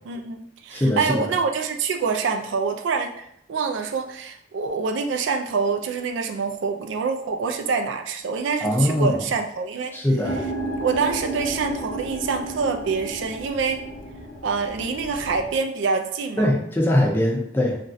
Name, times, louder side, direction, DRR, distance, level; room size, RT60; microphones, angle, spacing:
voice 1, 0.1-10.0 10.7-13.8 14.4-16.5, right 5 dB, 75° right, 5 dB, 0.3 m, -26 dB
voice 2, 0.7-1.3 8.6-9.2 9.9-10.4 16.4-17.8, left 1 dB, 10° left, -2 dB, 0.5 m, -21 dB
sound 1, 10.2-15.6, right 1 dB, 70° left, 1.0 m, -33 dB
3.0 x 2.5 x 2.5 m, 0.73 s
head